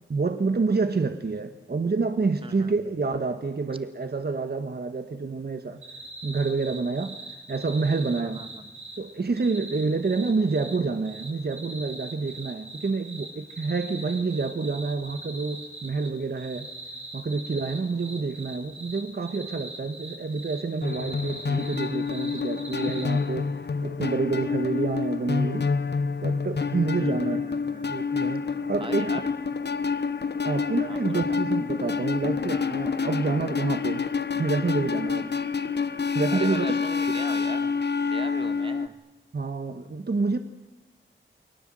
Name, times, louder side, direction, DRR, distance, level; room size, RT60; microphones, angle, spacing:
voice 1, 0.1-5.8 6.2-7.2 7.5-8.4 9.0-16.7 17.1-23.5 23.8-25.7 26.2-27.4 27.9-29.2 30.4-34.1 34.3-35.3 36.1-36.8 39.3-40.4, right 4 dB, 55° right, 8 dB, 1.4 m, -28 dB
voice 2, 2.4-2.7 8.2-8.7 27.0-28.0 28.8-29.3 30.8-31.4 36.3-37.8 38.0-39.0, right 2 dB, 25° right, 8 dB, 2.0 m, -40 dB
sound 1, 5.8-9.0 9.4-10.7 11.0-16.1 16.4-23.1, right 3 dB, 85° right, 7.0 m, -41 dB
sound 2, 20.8-38.9, left 5 dB, 55° left, 1.0 m, -28 dB
30.0 x 21.0 x 7.7 m, 1.1 s
wide cardioid pair, 80°, 20 cm